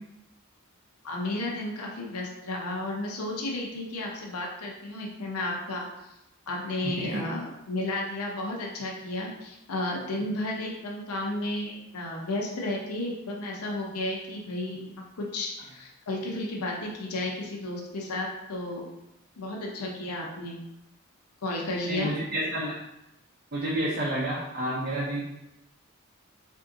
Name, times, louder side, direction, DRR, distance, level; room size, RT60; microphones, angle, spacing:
voice 1, 1.0-5.9 6.5-14.9 15.2-18.9 19.4-20.6 21.4-22.1, left 2 dB, 85° left, -1 dB, 0.6 m, -33 dB
voice 2, 6.8-7.2 21.9-22.7 23.5-25.2, right 1 dB, 45° right, -6 dB, 0.5 m, -29 dB
3.5 x 2.6 x 2.6 m, 0.89 s
head